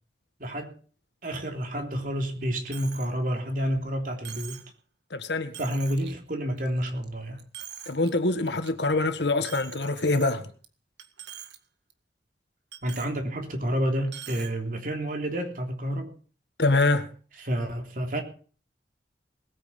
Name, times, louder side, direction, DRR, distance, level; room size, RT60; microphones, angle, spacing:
voice 1, 0.4-0.7 1.2-4.6 5.6-7.4 12.8-16.1 17.4-18.2, equal, 50° right, 3.2 m, -29 dB
Coin (dropping), 2.7-3.1 3.5-3.6 4.2-4.7 5.2-5.3 5.5-6.1 6.6-7.1 7.4-8.1 8.5-8.7 9.4-10.7 11.0-11.6 11.9-12.0 12.7-13.1 14.1-14.5, right 10 dB, 85° right, 1.8 m, -43 dB
voice 2, 5.1-5.5 7.9-10.5 16.6-17.1, left 2 dB, 80° left, 1.7 m, -24 dB
20.0 x 9.0 x 5.3 m
head